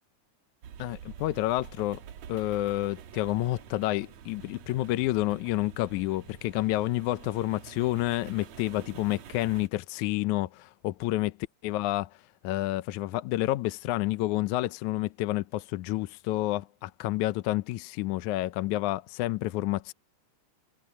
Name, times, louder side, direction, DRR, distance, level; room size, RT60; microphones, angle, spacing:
sound 1, 0.6-9.7, right 8 dB, 65° right, 2.4 m, -47 dB
voice 1, 0.8-2.0 2.3-11.4 11.6-12.1 12.4-19.9, left 17 dB, 75° left, 2.0 m, -29 dB
omnidirectional pair, 3.6 m